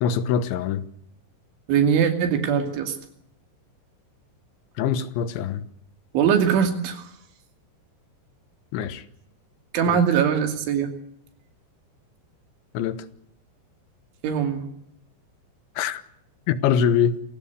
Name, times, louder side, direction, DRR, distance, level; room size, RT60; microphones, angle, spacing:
voice 1, 0.0-0.9 4.8-5.7 8.7-9.1 9.9-10.0 12.8-13.1 15.8-16.0 16.5-17.2, left 8 dB, 80° left, 3.5 m, -23 dB
voice 2, 1.7-3.0 6.1-7.1 9.7-10.9 14.2-14.6, right 7 dB, 85° right, 5.0 m, -21 dB
27.5 x 17.0 x 8.1 m
omnidirectional pair, 5.3 m